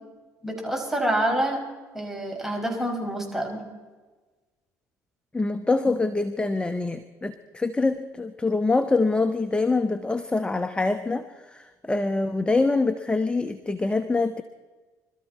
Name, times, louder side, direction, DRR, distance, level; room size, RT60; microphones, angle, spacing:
voice 1, 0.4-1.6 1.9-3.6, right 1 dB, 5° right, 1 dB, 5.7 m, -27 dB
voice 2, 5.3-14.4, left 3 dB, 10° left, 10 dB, 1.0 m, -25 dB
25.0 x 13.5 x 4.2 m, 1.3 s
hypercardioid pair, 60°, 9 cm